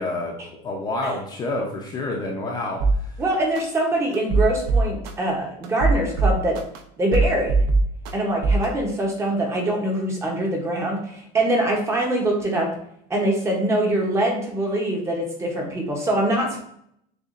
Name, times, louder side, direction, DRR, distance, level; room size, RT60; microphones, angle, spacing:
voice 1, 0.0-2.8, left 2 dB, 20° left, -1 dB, 0.5 m, -28 dB
sound 1, 2.8-3.0 3.5-3.6 4.1-5.1 5.6-6.8 7.1-8.1 8.4-8.7, right 3 dB, 55° right, 0.6 m, -19 dB
voice 2, 3.2-6.6 7.0-7.6 8.1-12.7 13.1-16.6, right 1 dB, 15° right, 0 dB, 0.7 m, -23 dB
6.7 x 2.4 x 2.4 m, 0.69 s
cardioid pair, 165°, 20 cm